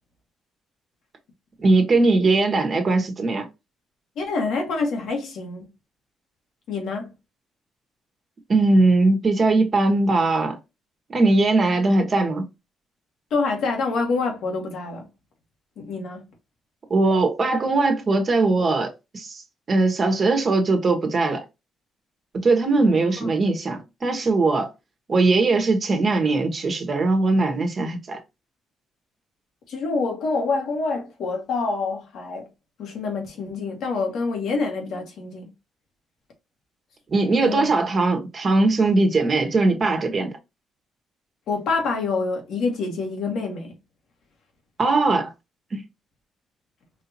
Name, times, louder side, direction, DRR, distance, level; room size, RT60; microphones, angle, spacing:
voice 1, 1.6-3.4 8.5-10.6 11.1-12.4 16.9-19.4 19.7-21.4 22.3-24.7 25.1-28.2 37.1-40.3 44.8-45.3 45.7-45.8, right 3 dB, 40° right, 1.3 m, -20 dB
voice 2, 4.1-5.7 6.7-7.1 13.3-15.1 15.8-16.2 22.8-22.9 23.2-23.3 29.7-32.5 32.8-35.5 37.4-37.7 41.5-43.7, left 4 dB, 75° left, 1.6 m, -26 dB
4.8 x 2.8 x 2.8 m
cardioid pair, 90°, 0 cm